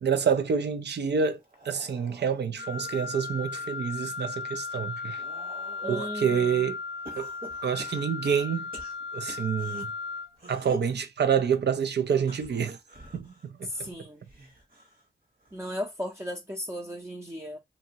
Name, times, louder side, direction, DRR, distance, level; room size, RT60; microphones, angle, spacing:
voice 1, 0.0-5.2 5.9-6.8 7.2-7.3 7.6-8.7 9.1-9.9 10.5-12.8 13.1-13.9, right 7 dB, 70° right, 0.5 m, -28 dB
sound 1, 1.4-3.7 4.2-6.2 7.1-9.8 10.3-11.0 12.2-15.1 15.4-15.8 17.0-17.1, right 1 dB, 50° right, 1.3 m, -46 dB
Wind instrument woodwind instrument, 2.6-10.3, left 4 dB, 90° left, 0.4 m, -36 dB
voice 2, 5.8-6.6 13.6-14.2 15.5-17.6, equal, 15° right, 0.6 m, -36 dB
2.8 x 2.6 x 2.7 m
cardioid pair, 60°, 18 cm